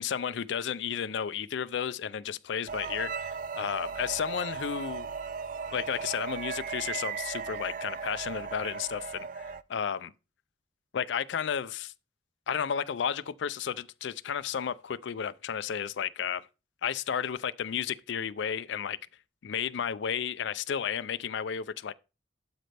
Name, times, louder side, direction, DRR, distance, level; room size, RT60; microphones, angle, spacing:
voice 1, 0.0-5.1 5.7-9.0 9.7-10.1 10.9-11.9 12.5-16.5 16.8-19.0 19.4-21.9, left 8 dB, 70° left, 0.4 m, -32 dB
sound 1, 2.7-9.6, right 6 dB, 45° right, 0.3 m, -37 dB
12.0 x 5.1 x 3.3 m
head